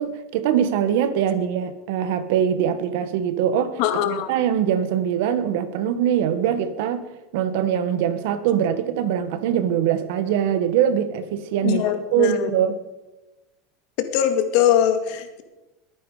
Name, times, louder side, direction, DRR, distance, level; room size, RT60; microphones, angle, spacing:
voice 1, 0.0-3.8 4.1-7.0 7.3-11.8 12.1-12.7, right 9 dB, 75° right, 11 dB, 1.5 m, -22 dB
voice 2, 3.8-4.3 11.6-12.5 14.0-15.4, left 10 dB, 70° left, 8 dB, 2.0 m, -21 dB
21.5 x 9.3 x 5.0 m, 1.1 s
supercardioid pair, 115°, 0 cm